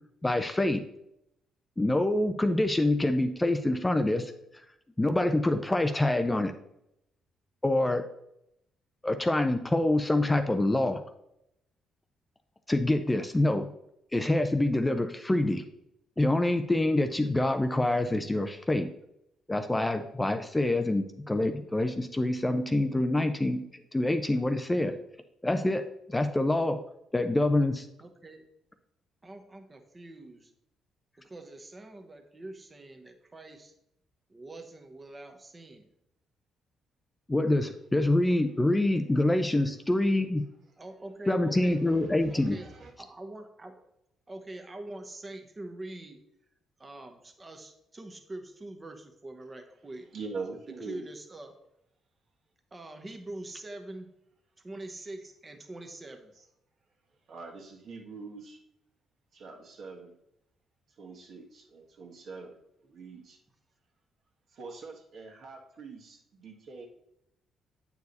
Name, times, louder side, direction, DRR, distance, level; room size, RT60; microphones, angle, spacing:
voice 1, 0.2-0.8 1.8-4.3 5.0-6.5 7.6-8.0 9.0-11.0 12.7-13.7 14.1-15.6 16.2-18.9 19.5-23.6 23.9-24.9 25.4-26.8 27.1-27.9 37.3-40.4 41.3-42.6, left 1 dB, 15° left, 7 dB, 0.5 m, -26 dB
voice 2, 28.0-28.4 29.2-30.5 31.2-33.7 34.3-35.9 40.8-41.8 42.3-43.8 44.3-46.2 46.8-50.1 50.8-51.5 52.7-54.1 54.6-56.3, right 2 dB, 25° right, 5 dB, 1.0 m, -44 dB
voice 3, 41.5-42.9 50.1-51.1 57.3-58.6 59.3-60.1 61.0-63.4 64.5-66.9, right 4 dB, 60° right, 1 dB, 1.6 m, -44 dB
8.1 x 4.7 x 4.1 m, 0.80 s
cardioid pair, 90°, 0 cm